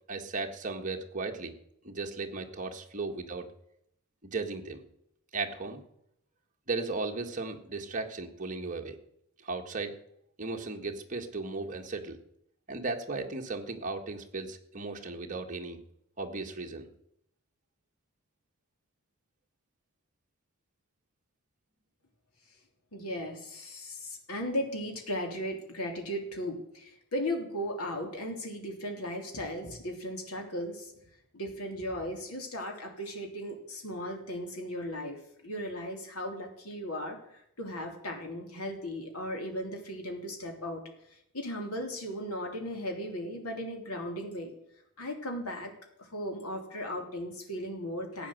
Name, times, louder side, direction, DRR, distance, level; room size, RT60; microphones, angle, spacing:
voice 1, 0.1-1.5 1.8-3.5 4.2-4.8 5.3-5.8 6.7-9.0 9.4-9.9 10.4-12.2 12.7-15.8 16.2-16.9, right 3 dB, 35° right, 2 dB, 1.7 m, -36 dB
voice 2, 22.9-30.9 31.3-40.8 41.3-44.5 45.0-48.3, equal, 85° left, 3 dB, 3.2 m, -36 dB
15.0 x 9.0 x 7.8 m, 0.75 s
head